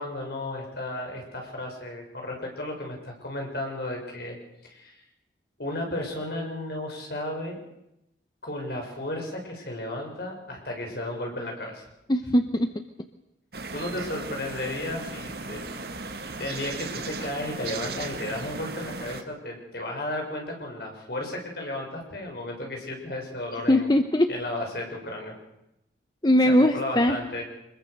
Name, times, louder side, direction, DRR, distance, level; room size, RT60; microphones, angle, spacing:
voice 1, 0.0-4.4 4.6-5.0 5.6-7.6 8.4-11.8 13.7-23.9 24.3-25.3 26.4-27.4, left 1 dB, 55° left, 1 dB, 6.4 m, -34 dB
voice 2, 12.1-12.8 23.7-24.3 26.2-27.2, left 1 dB, 20° left, 8 dB, 0.9 m, -21 dB
sound 1, 13.5-19.2, right 3 dB, 55° right, 1.9 m, -36 dB
25.0 x 21.5 x 6.6 m, 0.86 s
head